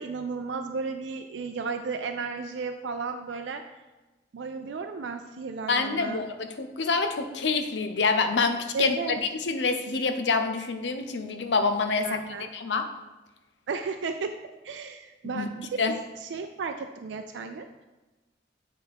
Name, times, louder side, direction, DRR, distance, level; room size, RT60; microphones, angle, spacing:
voice 1, 0.0-3.6 4.3-6.2 8.7-9.2 12.0-12.5 13.7-14.3 14.6-15.8 16.2-17.6, right 4 dB, 90° right, 6 dB, 0.4 m, -33 dB
voice 2, 5.7-9.0 9.5-12.2 12.5-12.9 15.2-15.5 15.8-15.9, left 4 dB, 85° left, 6 dB, 0.6 m, -26 dB
8.3 x 3.4 x 4.6 m, 1.1 s
head